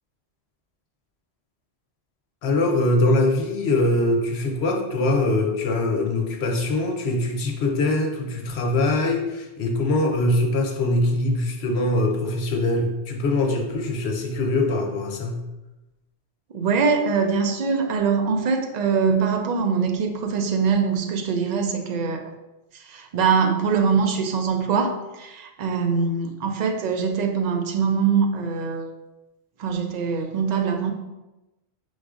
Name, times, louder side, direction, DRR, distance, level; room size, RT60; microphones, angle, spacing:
voice 1, 2.4-15.4, left 2 dB, 75° left, 2 dB, 1.0 m, -23 dB
voice 2, 16.5-22.3 22.7-28.9 29.6-30.9, right 5 dB, 55° right, 4 dB, 0.5 m, -23 dB
4.9 x 3.9 x 2.4 m, 1.0 s
omnidirectional pair, 1.1 m